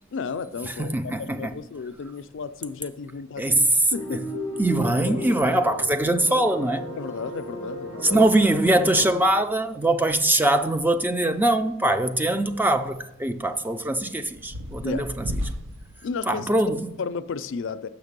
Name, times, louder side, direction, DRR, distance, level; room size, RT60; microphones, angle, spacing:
voice 1, 0.1-4.3 5.1-5.2 7.0-8.2 14.8-15.1 16.0-16.5 17.0-17.9, left 5 dB, 65° left, 0.4 m, -33 dB
voice 2, 0.6-1.6 3.4-4.2 4.6-6.9 8.0-15.2 16.3-16.9, right 1 dB, 10° right, 0.4 m, -22 dB
sound 1, 2.0-16.2, equal, 65° right, 0.7 m, -41 dB
sound 2, 3.9-9.2, left 1 dB, 80° right, 3.9 m, -35 dB
6.9 x 5.9 x 6.6 m
head